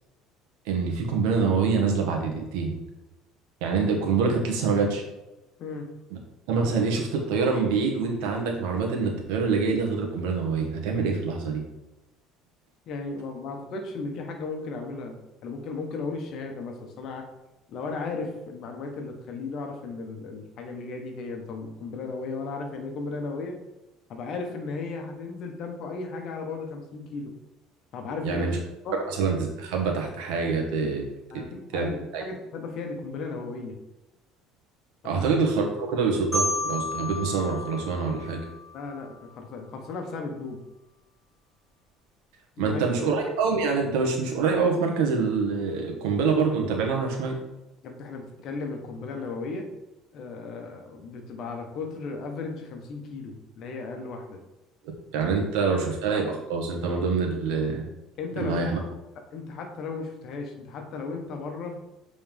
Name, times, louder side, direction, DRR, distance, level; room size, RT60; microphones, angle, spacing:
voice 1, 0.6-2.7 3.6-5.0 6.5-11.6 28.2-28.6 28.9-31.0 31.3-31.4 31.7-32.2 35.0-38.4 42.6-47.4 55.1-57.9 58.4-58.8, right 4 dB, 85° right, 1 dB, 1.5 m, -25 dB
voice 2, 12.9-15.1 15.4-17.2 17.7-23.5 24.1-27.3 27.9-28.5 28.8-28.9 31.3-33.7 35.1-35.2 38.7-40.6 42.6-42.8 47.8-49.7 50.1-54.4 55.7-55.8 58.2-58.6 59.3-61.7, left 4 dB, 55° left, 3 dB, 1.3 m, -35 dB
Marimba xylophone, 36.3-39.2, left 1 dB, 15° right, 2.3 m, -32 dB
7.7 x 4.1 x 3.6 m, 0.99 s
cardioid pair, 125°, 0 cm